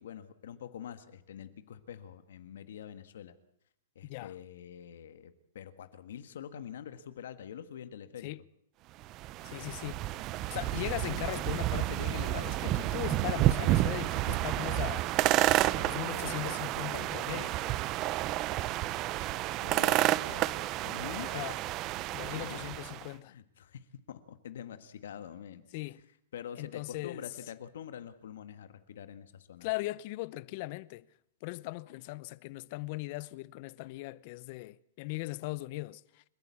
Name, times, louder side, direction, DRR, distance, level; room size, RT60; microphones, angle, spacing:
voice 1, 0.0-3.3 3.9-8.3 19.6-21.3 22.2-22.6 23.2-25.6 26.3-29.7, left 9 dB, 75° left, 1.7 m, -45 dB
voice 2, 4.0-4.3 8.2-8.4 9.4-10.1 10.5-15.1 15.7-17.6 21.2-21.6 22.1-23.3 25.7-26.0 26.6-27.2 29.6-31.1 31.4-36.2, left 21 dB, 45° left, 0.7 m, -39 dB
sound 1, 9.0-23.1, right 15 dB, 35° right, 0.7 m, -30 dB
29.0 x 11.0 x 8.5 m
hypercardioid pair, 140°, 0 cm